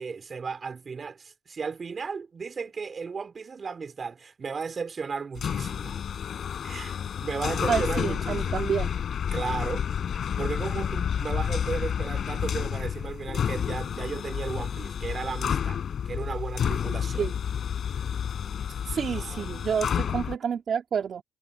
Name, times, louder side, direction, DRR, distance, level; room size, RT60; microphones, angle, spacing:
voice 1, 0.0-6.0 6.6-8.6 9.3-9.8 10.4-17.3 19.0-19.6, right 5 dB, 40° right, 4.3 m, -35 dB
sound 1, 5.3-20.4, left 8 dB, 55° left, 6.1 m, -30 dB
voice 2, 7.7-8.9 17.2-17.3 18.9-21.2, right 7 dB, 55° right, 2.8 m, -29 dB
cardioid pair, 90°, 0 cm